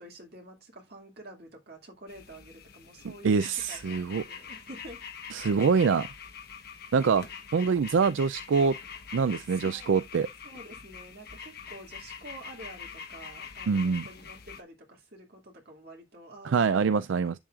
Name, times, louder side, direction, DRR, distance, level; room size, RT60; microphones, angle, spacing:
voice 1, 0.0-5.0 9.5-9.9 10.4-17.0, right 1 dB, 55° right, 2.4 m, -48 dB
sound 1, 2.1-14.6, left 6 dB, 50° left, 1.1 m, -44 dB
voice 2, 3.0-4.2 5.3-6.1 6.9-7.3 7.5-8.7 9.1-10.3 13.7-14.0 16.4-17.3, right 5 dB, 75° right, 0.4 m, -25 dB
8.9 x 7.1 x 2.4 m
head